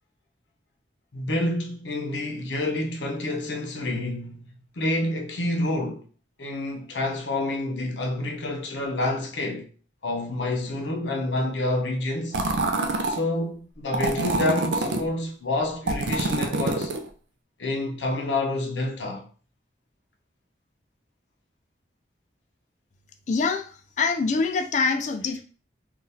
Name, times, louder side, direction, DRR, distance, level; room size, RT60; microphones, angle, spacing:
voice 1, 1.1-4.4 4.8-6.1 6.4-9.7 10.0-12.4 13.0-16.9 17.6-19.2, left 2 dB, 85° left, 0.7 m, -28 dB
sound 1, 12.3-13.2 13.9-15.0 15.9-17.1, right 2 dB, 75° right, 0.5 m, -26 dB
voice 2, 23.3-23.7 24.0-25.4, left 4 dB, 40° left, 0.3 m, -24 dB
3.7 x 2.3 x 2.7 m
head